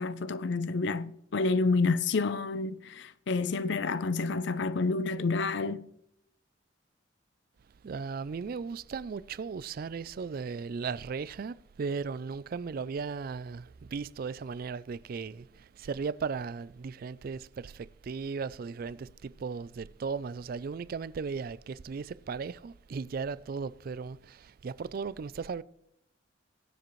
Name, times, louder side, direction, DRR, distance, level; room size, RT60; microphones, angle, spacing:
voice 1, 0.0-5.8, left 3 dB, 65° left, 0.5 m, -29 dB
voice 2, 7.8-25.6, right 5 dB, 50° right, 0.3 m, -36 dB
22.0 x 7.6 x 3.1 m
head